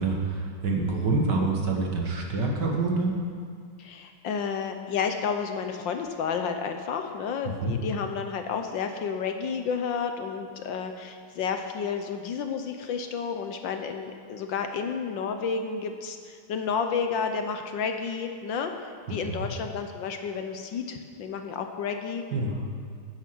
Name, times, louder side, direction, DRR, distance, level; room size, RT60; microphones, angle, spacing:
voice 1, 0.0-3.2 7.6-7.8 19.1-19.5 22.3-22.6, right 3 dB, 55° right, 0 dB, 2.1 m, -27 dB
voice 2, 3.8-22.2, left 6 dB, 70° left, 6 dB, 1.4 m, -31 dB
15.5 x 8.3 x 6.1 m, 2.1 s
omnidirectional pair, 2.3 m